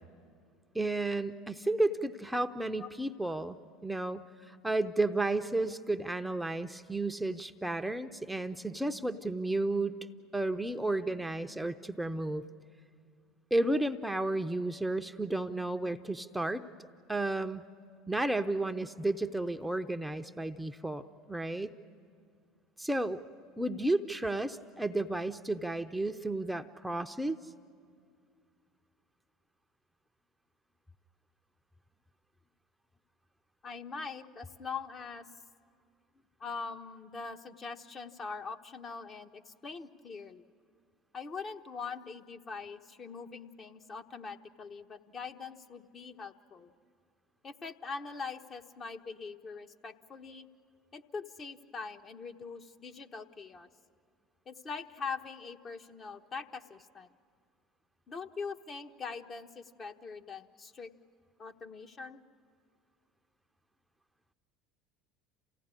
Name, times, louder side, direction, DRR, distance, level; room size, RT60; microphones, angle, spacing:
voice 1, 0.7-10.0 10.3-12.5 13.5-16.6 17.1-17.6 18.1-21.7 22.8-23.2 23.6-27.4, right 2 dB, 5° right, 7 dB, 0.7 m, -32 dB
voice 2, 33.6-35.3 36.4-40.4 41.1-46.7 47.4-50.5 50.9-53.7 54.5-57.1 58.1-60.9 61.4-62.2, left 5 dB, 35° left, 5 dB, 1.1 m, -42 dB
28.0 x 16.5 x 9.8 m, 2.3 s
hypercardioid pair, 75°, 0 cm